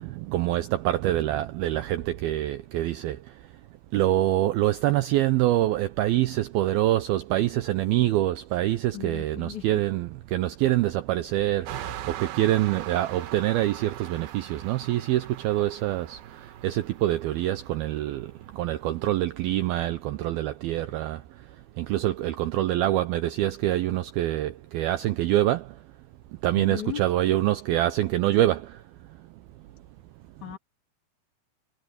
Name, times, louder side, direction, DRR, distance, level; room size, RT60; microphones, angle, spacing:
voice 1, 0.0-3.2 3.9-11.7 12.2-16.2 16.6-18.3 18.5-21.2 21.8-25.6 26.4-28.6, right 14 dB, 85° right, 2.1 m, -25 dB
voice 2, 8.9-9.7 26.6-27.1 30.4-30.6, left 12 dB, 45° left, 3.6 m, -36 dB
sound 1, 11.7-19.7, right 11 dB, 65° right, 2.8 m, -41 dB
omnidirectional pair, 5.3 m